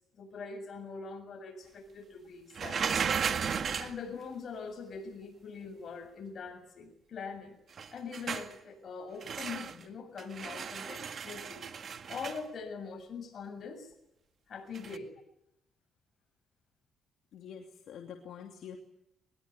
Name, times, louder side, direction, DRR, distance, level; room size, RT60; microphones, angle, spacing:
voice 1, 0.1-3.0 3.8-7.6 7.9-13.9 14.5-15.1, left 5 dB, 55° left, 6 dB, 7.5 m, -43 dB
sound 1, 2.5-4.0 7.7-8.5 9.2-9.8 10.2-12.4 14.7-15.0, right 6 dB, 50° right, 1.9 m, -35 dB
voice 2, 17.3-18.8, left 8 dB, 75° left, 2 dB, 2.8 m, -46 dB
22.5 x 22.0 x 9.5 m, 0.81 s
cardioid pair, 90°, 0 cm